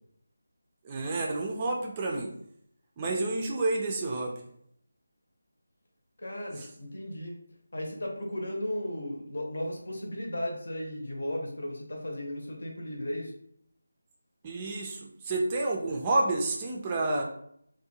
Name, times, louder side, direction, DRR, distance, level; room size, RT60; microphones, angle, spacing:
voice 1, 0.8-2.3 3.0-4.4 6.6-6.7 14.4-17.2, right 2 dB, 20° right, 0 dB, 0.3 m, -29 dB
voice 2, 6.2-7.4 7.7-13.3, left 1 dB, 60° left, 0 dB, 0.7 m, -35 dB
2.5 x 2.2 x 2.7 m, 0.69 s
figure-of-eight pair, 165°, 0 cm